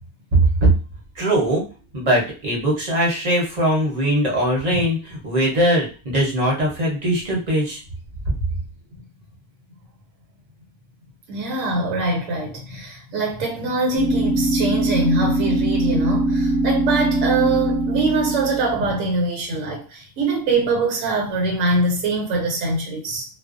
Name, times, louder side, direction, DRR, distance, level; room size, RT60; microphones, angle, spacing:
voice 1, 0.3-0.7 1.1-1.6 1.9-7.8 8.3-8.4, right 1 dB, 35° right, 0.8 m, -20 dB
voice 2, 11.3-23.2, right 2 dB, 70° right, 1.1 m, -23 dB
sound 1, 14.0-19.0, right 1 dB, 25° left, 0.9 m, -22 dB
2.5 x 2.1 x 2.4 m
omnidirectional pair, 1.5 m